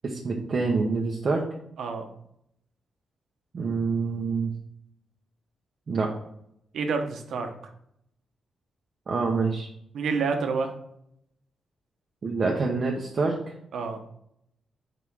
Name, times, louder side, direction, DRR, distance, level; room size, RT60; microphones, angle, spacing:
voice 1, 0.0-1.4 3.5-4.5 5.9-6.1 9.1-9.7 12.2-13.4, right 4 dB, 40° right, -1 dB, 0.9 m, -26 dB
voice 2, 6.7-7.5 9.9-10.7 13.7-14.0, right 4 dB, 70° right, 5 dB, 1.1 m, -28 dB
5.7 x 4.9 x 4.8 m, 0.75 s
wide cardioid pair, 145°, 0 cm